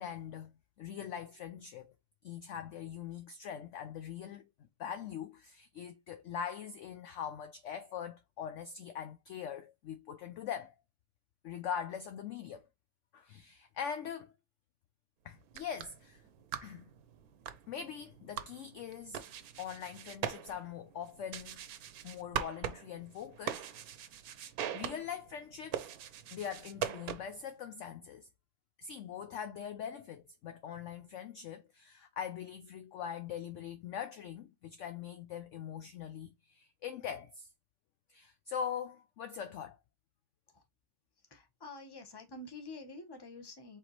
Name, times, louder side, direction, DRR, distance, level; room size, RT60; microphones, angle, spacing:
voice 1, 0.0-1.9 2.2-4.5 4.8-10.8 11.4-12.7 13.1-14.3 15.2-16.2 16.6-16.9 17.7-19.2 19.6-21.6 22.0-23.6 24.7-25.9 26.3-28.3 28.8-37.5 38.1-39.8, left 8 dB, 65° left, 0.8 m, -42 dB
sound 1, 15.4-27.5, right 9 dB, 80° right, 1.1 m, -42 dB
voice 2, 41.1-43.8, left 2 dB, 20° left, 0.9 m, -48 dB
4.7 x 3.6 x 3.0 m
omnidirectional pair, 1.6 m